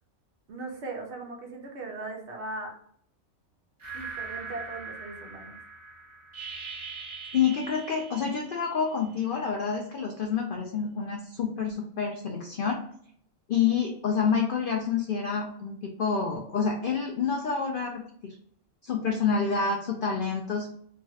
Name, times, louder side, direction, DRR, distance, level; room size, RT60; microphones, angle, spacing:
voice 1, 0.5-2.7 3.9-5.6, right 2 dB, 60° right, 0 dB, 1.0 m, -38 dB
sound 1, 3.8-9.2, right 4 dB, 25° right, 1.2 m, -41 dB
voice 2, 7.3-12.8 13.5-18.4 18.8-20.7, left 6 dB, 70° left, 1 dB, 0.5 m, -28 dB
3.2 x 2.3 x 2.7 m, 0.65 s
omnidirectional pair, 1.4 m